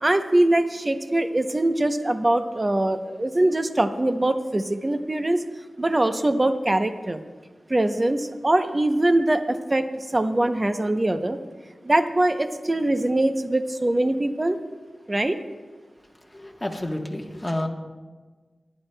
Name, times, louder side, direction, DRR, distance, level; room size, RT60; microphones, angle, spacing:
voice 1, 0.0-5.4 5.8-7.2 7.7-9.9 10.1-11.4 11.8-14.6 15.1-15.4, right 1 dB, 25° right, 8 dB, 0.6 m, -22 dB
voice 2, 16.3-17.7, left 1 dB, 15° left, 2 dB, 1.1 m, -30 dB
23.5 x 10.5 x 2.2 m, 1.4 s
wide cardioid pair, 110°, 0 cm